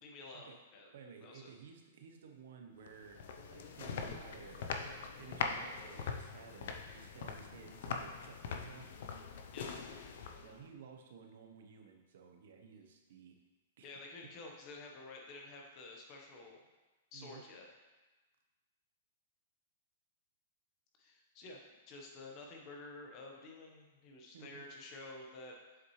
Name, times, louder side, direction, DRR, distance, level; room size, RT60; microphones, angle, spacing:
voice 1, 0.0-0.9 1.2-1.5 9.5-9.7 13.8-16.6 17.1-17.7 21.0-21.6 21.9-25.5, left 2 dB, 30° left, 0 dB, 1.1 m, -50 dB
voice 2, 0.9-8.9 10.4-13.4 13.8-13.9 14.2-14.3 17.1-17.4 24.3-24.6, right 6 dB, 65° right, 4 dB, 0.9 m, -55 dB
sound 1, 2.9-10.7, left 5 dB, 60° left, 0.6 m, -42 dB
7.5 x 5.9 x 3.2 m, 1.2 s
hypercardioid pair, 160°, 0 cm